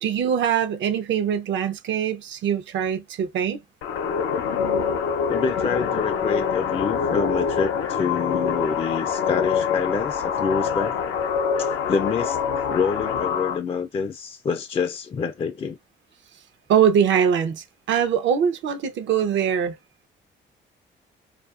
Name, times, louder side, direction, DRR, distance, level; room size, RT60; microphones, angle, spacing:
voice 1, 0.0-3.6 16.7-19.8, right 8 dB, 70° right, 0.6 m, -22 dB
sound 1, 3.8-13.6, left 6 dB, 85° left, 0.6 m, -25 dB
voice 2, 5.3-11.0 11.6-15.8, left 5 dB, 30° left, 0.3 m, -27 dB
2.6 x 2.3 x 2.4 m
cardioid pair, 90°, 20 cm